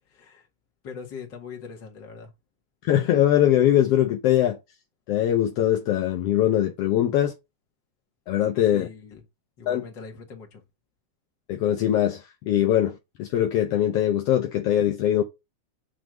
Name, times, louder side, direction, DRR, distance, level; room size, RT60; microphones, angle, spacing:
voice 1, 0.1-0.5 0.8-2.3 8.7-9.2 9.6-10.6, left 5 dB, 40° left, 2.2 m, -41 dB
voice 2, 2.8-4.6 5.1-7.3 8.3-8.9 9.7-9.8 11.5-15.2, left 11 dB, 70° left, 1.5 m, -22 dB
7.7 x 3.5 x 4.9 m
omnidirectional pair, 3.5 m